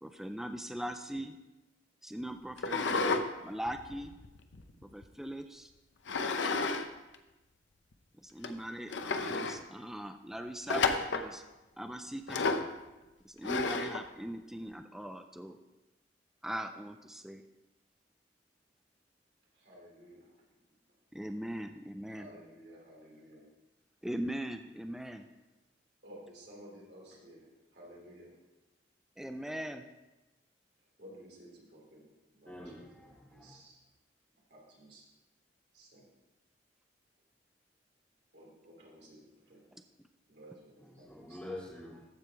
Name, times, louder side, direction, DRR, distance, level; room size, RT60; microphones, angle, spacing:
voice 1, 0.0-1.4 2.0-3.0 3.4-4.2 4.8-5.7 8.2-11.4 11.8-12.5 13.2-15.6 16.4-17.4 21.1-22.3 24.0-25.3 29.2-29.9 39.7-39.8, right 1 dB, ahead, 6 dB, 0.3 m, -40 dB
sound 1, 2.6-3.3 3.7-5.0 6.1-6.9 7.1-7.2 7.9-8.0 8.4-8.5 8.9-9.6 10.7-11.3 12.3-12.7 13.4-14.0, left 4 dB, 85° left, 0.7 m, -31 dB
voice 2, 19.5-20.4 22.1-23.4 26.0-28.3 31.0-32.0 32.3-32.7 33.0-33.8 34.5-35.0 35.7-36.2 38.3-39.2 39.4-39.6 40.3-41.4, equal, 65° right, -3 dB, 3.1 m, -54 dB
voice 3, 32.4-33.6 40.8-42.0, left 1 dB, 15° left, -11 dB, 2.4 m, -46 dB
14.5 x 5.0 x 4.6 m, 1.0 s
head